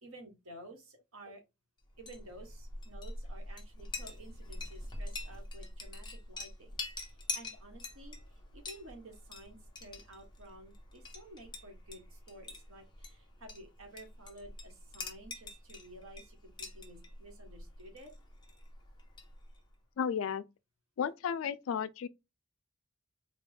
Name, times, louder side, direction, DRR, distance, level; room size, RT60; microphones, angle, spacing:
voice 1, 0.0-1.4 2.0-6.8 7.3-18.1, right 1 dB, 85° right, 1.3 m, -53 dB
Chink clink, 1.9-19.7, left 3 dB, 20° left, 0.7 m, -45 dB
voice 2, 20.0-20.4 21.0-22.1, left 7 dB, 70° left, 0.3 m, -33 dB
4.2 x 2.3 x 3.4 m
head